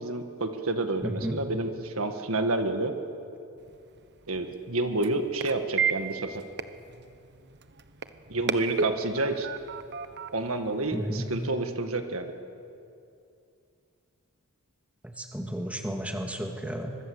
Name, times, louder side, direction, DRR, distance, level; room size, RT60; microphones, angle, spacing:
voice 1, 0.0-2.9 4.3-6.4 8.3-9.5 10.3-12.3, right 2 dB, 75° right, 6 dB, 1.8 m, -29 dB
voice 2, 1.0-1.4 10.9-11.3 15.2-17.0, equal, 5° right, 3 dB, 2.1 m, -32 dB
sound 1, 3.6-11.5, right 6 dB, 55° right, 1.1 m, -35 dB
25.5 x 23.0 x 8.0 m, 2.5 s
head